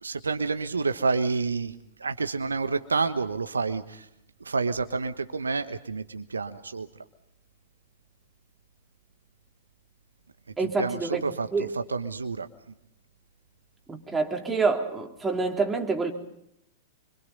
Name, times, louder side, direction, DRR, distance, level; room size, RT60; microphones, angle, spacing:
voice 1, 0.0-1.7 2.0-4.1 4.4-6.9 10.6-12.5, right 4 dB, 85° right, 9 dB, 1.2 m, -29 dB
voice 2, 10.6-11.2 11.5-11.7 13.9-16.1, right 4 dB, 15° right, 1 dB, 3.8 m, -27 dB
27.0 x 25.0 x 5.4 m, 0.79 s
figure-of-eight pair, 100°, 0 cm